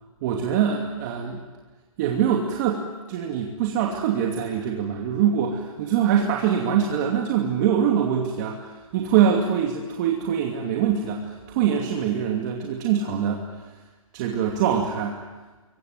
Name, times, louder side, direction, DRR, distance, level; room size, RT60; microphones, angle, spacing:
voice 1, 0.2-1.4 2.0-13.8 14.1-15.2, right 8 dB, 30° right, 1 dB, 2.6 m, -24 dB
27.0 x 23.5 x 9.4 m, 1.3 s
hypercardioid pair, 160°, 18 cm